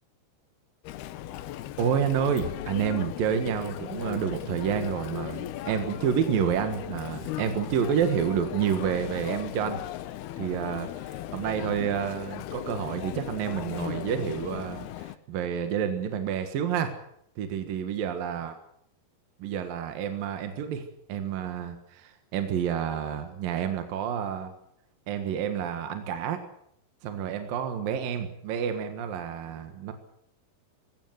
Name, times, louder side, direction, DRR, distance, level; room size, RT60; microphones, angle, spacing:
Chatter, 0.8-15.2, left 13 dB, 80° left, 2.9 m, -37 dB
voice 1, 1.8-9.8 10.4-16.9 17.4-18.5 19.4-20.8 21.1-24.5 25.1-26.4 27.0-29.9, right 8 dB, 65° right, 7 dB, 3.2 m, -29 dB
20.0 x 17.0 x 9.4 m, 0.72 s
omnidirectional pair, 4.6 m